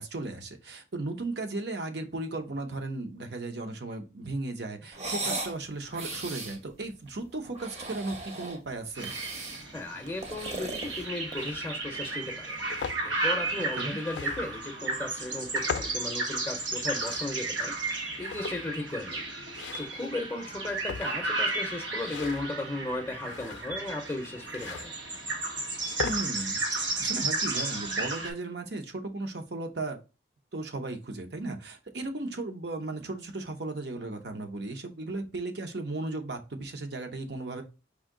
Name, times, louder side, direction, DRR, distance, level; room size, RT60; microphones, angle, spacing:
voice 1, 0.0-9.1 13.8-14.0 26.0-30.0 30.5-37.6, right 2 dB, 65° right, 0.8 m, -36 dB
sound 1, 4.9-5.6 5.9-6.6 7.4-8.6 9.0-9.7 10.1-11.6, right 2 dB, 35° right, 0.8 m, -37 dB
sound 2, 8.9-28.3, right 3 dB, 90° right, 1.3 m, -33 dB
voice 2, 9.7-12.6 13.0-17.7 18.2-19.2 19.8-24.9, left 2 dB, 15° left, 0.6 m, -36 dB
sound 3, 11.4-11.6 12.3-13.0 14.0-14.6 15.4-16.0 16.7-17.3 18.2-18.8 19.5-20.0 20.6-21.3 21.9-22.5 23.2-23.9 24.5-24.9 25.7-26.2, left 6 dB, 75° left, 0.3 m, -39 dB
4.9 x 2.7 x 3.7 m
head